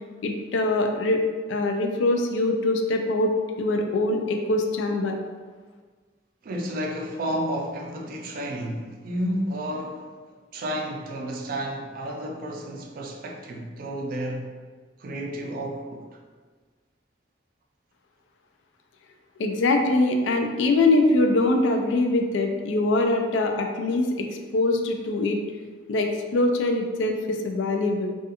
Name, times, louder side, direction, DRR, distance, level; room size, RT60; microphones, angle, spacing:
voice 1, 0.2-1.2 1.5-3.3 3.6-5.2 19.4-24.3 24.5-25.4 25.9-28.1, left 2 dB, 80° left, 0.3 m, -23 dB
voice 2, 6.4-10.1 10.5-14.5 15.0-16.0, equal, 50° right, 0.3 m, -31 dB
2.4 x 2.3 x 2.7 m
head